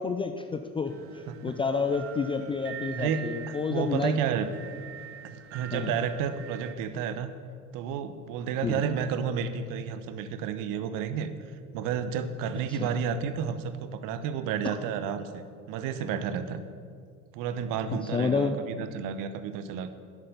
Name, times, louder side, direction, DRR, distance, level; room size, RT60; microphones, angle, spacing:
voice 1, 0.0-4.2 4.6-4.8 5.7-5.9 8.6-8.8 12.7-12.9 14.6-14.7 17.9-18.6, left 4 dB, 15° left, 6 dB, 0.4 m, -30 dB
sound 1, 0.9-6.7, right 10 dB, 30° right, 0.6 m, -45 dB
voice 2, 3.7-4.5 5.2-7.3 7.7-11.3 11.7-16.6 17.3-19.9, right 7 dB, 45° right, 11 dB, 0.9 m, -31 dB
10.0 x 8.4 x 6.8 m, 2.2 s
figure-of-eight pair, 75°, 44 cm